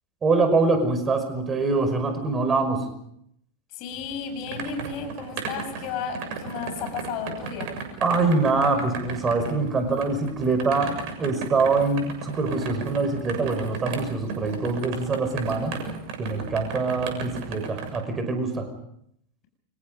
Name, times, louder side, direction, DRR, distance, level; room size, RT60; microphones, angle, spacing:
voice 1, 0.2-2.9 8.0-15.8 16.2-18.7, right 3 dB, 20° right, 7 dB, 5.6 m, -24 dB
voice 2, 3.7-7.8, left 6 dB, 40° left, 6 dB, 7.3 m, -33 dB
sound 1, 3.9-18.0, right 5 dB, 45° right, 7.1 m, -35 dB
30.0 x 26.0 x 5.4 m, 0.73 s
figure-of-eight pair, 90°, 0 cm